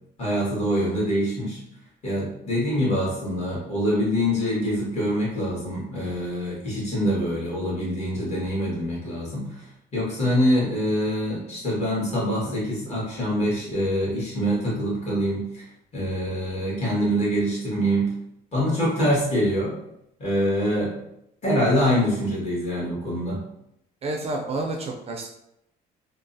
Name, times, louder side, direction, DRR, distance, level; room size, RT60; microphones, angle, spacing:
voice 1, 0.2-1.6 2.0-9.7 9.9-15.6 15.9-18.1 18.5-19.7 20.2-21.0 21.4-23.4, equal, 40° left, -6 dB, 1.5 m, -25 dB
voice 2, 24.0-25.3, right 2 dB, 35° right, 1 dB, 0.4 m, -29 dB
3.0 x 2.0 x 2.6 m, 0.80 s
cardioid pair, 110°, 17 cm